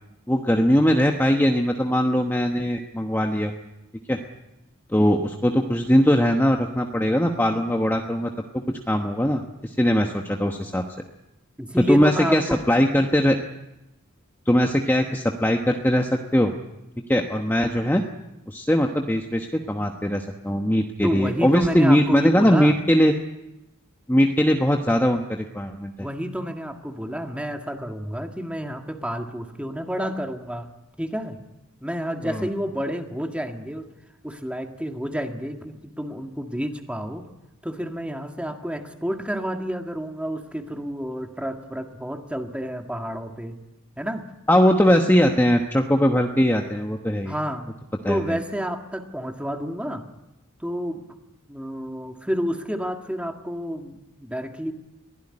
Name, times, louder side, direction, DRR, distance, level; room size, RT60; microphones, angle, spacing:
voice 1, 0.3-3.5 4.1-4.2 4.9-8.3 8.7-10.8 11.9-13.4 14.5-16.5 17.1-18.0 18.5-23.1 24.1-25.9 32.2-32.5 44.5-47.3 48.0-48.4, equal, 10° left, 3 dB, 1.1 m, -20 dB
voice 2, 11.6-12.7 21.0-22.8 24.4-24.5 26.0-30.7 31.0-31.4 31.8-33.9 34.2-37.3 37.6-43.6 44.0-44.2 47.2-47.7 48.1-50.1 50.6-51.0 51.4-54.7, equal, 5° right, 4 dB, 1.8 m, -30 dB
23.0 x 16.0 x 9.9 m, 0.96 s
head